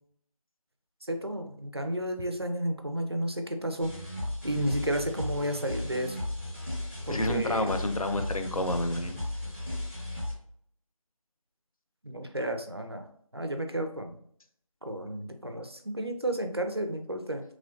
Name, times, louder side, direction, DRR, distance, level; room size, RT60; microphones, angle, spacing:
voice 1, 1.1-3.9 4.4-6.2 7.1-7.7 12.0-13.1 13.3-14.2 14.8-17.4, right 1 dB, 45° right, 6 dB, 0.4 m, -32 dB
sound 1, 3.8-10.3, left 1 dB, 20° left, 1.1 m, -35 dB
voice 2, 7.1-9.2, left 1 dB, 75° left, 7 dB, 0.5 m, -29 dB
3.0 x 2.5 x 2.6 m, 0.63 s
figure-of-eight pair, 175°, 18 cm